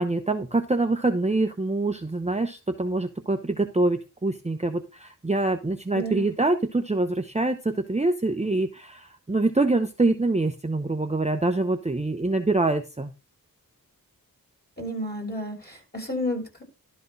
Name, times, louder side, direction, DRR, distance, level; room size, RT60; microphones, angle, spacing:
voice 1, 0.0-13.1, right 2 dB, 20° right, 7 dB, 0.8 m, -25 dB
voice 2, 5.9-6.2 14.8-16.6, equal, 25° left, 0 dB, 6.9 m, -31 dB
12.5 x 4.2 x 5.3 m, 0.29 s
wide cardioid pair, 50°, 37 cm